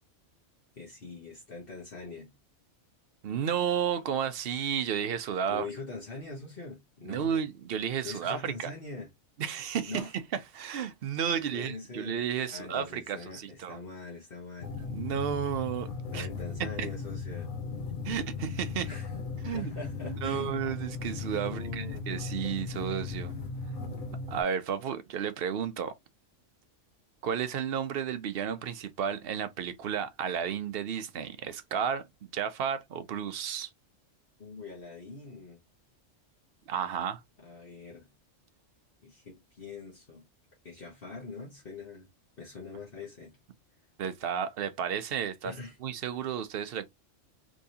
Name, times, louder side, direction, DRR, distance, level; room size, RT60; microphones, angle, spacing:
voice 1, 0.7-2.3 5.5-7.4 8.0-9.1 9.8-10.1 11.3-12.2 12.5-14.7 16.1-17.5 18.8-19.1 19.4-20.5 21.4-22.0 34.4-35.6 37.4-38.1 39.0-40.2 40.6-42.1 42.4-43.3 45.4-45.8, left 3 dB, 50° left, 1.4 m, -43 dB
voice 2, 3.2-5.7 7.0-8.7 9.4-10.0 10.5-13.8 14.9-16.3 16.8-16.9 18.0-18.9 19.4-19.7 20.0-23.3 23.7-24.0 24.3-25.9 27.2-33.7 36.7-37.2 44.0-45.5 45.8-46.8, right 8 dB, 60° right, 0.8 m, -32 dB
sound 1, 14.6-24.4, left 4 dB, 75° left, 1.1 m, -37 dB
3.6 x 3.1 x 2.7 m
omnidirectional pair, 1.3 m